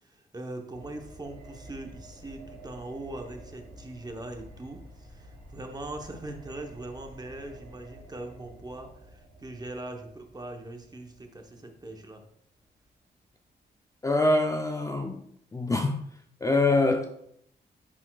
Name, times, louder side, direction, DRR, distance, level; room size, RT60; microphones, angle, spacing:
voice 1, 0.0-12.2, right 2 dB, 20° right, 0.9 m, -41 dB
sound 1, 0.7-12.6 12.9-13.0, right 1 dB, 90° right, 2.4 m, -50 dB
voice 2, 14.0-15.2 15.5-16.0 16.4-17.1, left 2 dB, 20° left, 0.5 m, -24 dB
9.8 x 4.3 x 2.3 m
cardioid pair, 100°, 18 cm